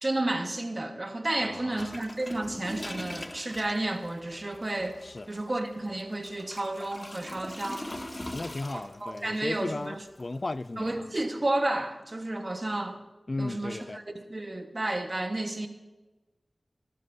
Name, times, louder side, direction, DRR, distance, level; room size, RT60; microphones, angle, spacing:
voice 1, 0.0-5.0 5.3-7.9 8.7-10.0 10.8-13.0 13.4-15.7, right 2 dB, 45° right, 1.4 m, -31 dB
voice 2, 1.4-2.0 5.0-5.3 8.2-11.1 13.3-14.0, left 2 dB, 55° left, 0.3 m, -36 dB
sound 1, 1.8-11.0, left 1 dB, 35° left, 1.2 m, -43 dB
23.5 x 12.5 x 2.8 m
cardioid pair, 40°, 0 cm